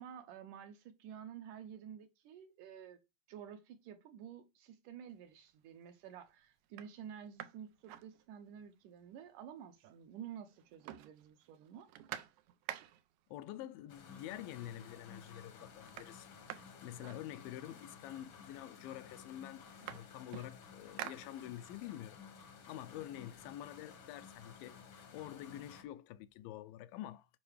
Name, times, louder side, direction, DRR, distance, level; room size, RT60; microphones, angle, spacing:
voice 1, 0.0-3.0 3.3-11.9, right 9 dB, 75° right, 2.1 m, -51 dB
sound 1, 5.2-5.7 6.2-6.3 6.6-8.7 9.1-9.2 9.4-10.2 10.5-13.2 14.2-14.3 14.7-15.2 15.4-17.8 18.6-18.7 19.0-21.9 22.3-24.0, right 12 dB, 90° right, 1.7 m, -50 dB
voice 2, 13.3-16.3 16.5-22.2 22.7-24.8 25.1-27.3, left 13 dB, 85° left, 2.3 m, -47 dB
sound 2, 13.9-25.8, left 6 dB, 60° left, 1.3 m, -55 dB
10.5 x 5.4 x 3.3 m
omnidirectional pair, 4.1 m